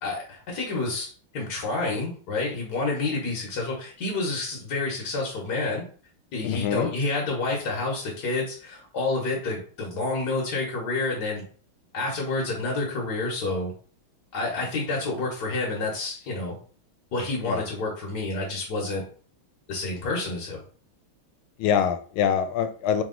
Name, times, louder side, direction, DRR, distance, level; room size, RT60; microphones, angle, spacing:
voice 1, 0.0-5.8 6.3-11.4 11.9-13.7 14.3-16.6 17.1-19.0 19.7-20.6, left 3 dB, 55° left, -2 dB, 1.4 m, -29 dB
voice 2, 6.4-6.9 17.4-17.6 21.6-23.0, left 8 dB, 85° left, 8 dB, 1.4 m, -24 dB
3.6 x 3.0 x 3.7 m, 0.42 s
omnidirectional pair, 2.3 m